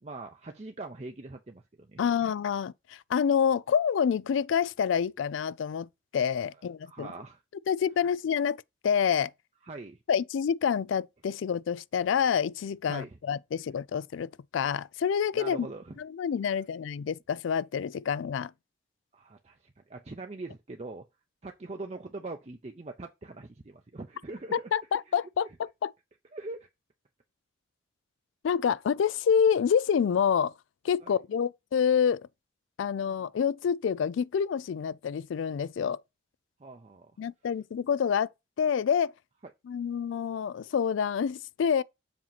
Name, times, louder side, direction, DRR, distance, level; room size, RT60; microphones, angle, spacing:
voice 1, 0.0-2.3 6.9-7.4 9.6-10.0 12.9-13.2 15.3-16.0 16.5-16.6 19.1-21.1 21.4-24.7 25.1-25.2 26.3-26.7 31.0-31.2 33.1-33.3 36.6-37.2, right 2 dB, 35° right, 0.5 m, -42 dB
voice 2, 2.0-5.9 6.1-7.1 7.7-8.6 8.8-9.3 10.1-15.7 16.0-18.5 24.7-25.9 28.4-30.5 30.8-32.3 32.8-36.0 37.2-38.3 38.6-39.1 39.7-41.8, left 7 dB, 80° left, 0.3 m, -27 dB
7.2 x 2.9 x 5.7 m
head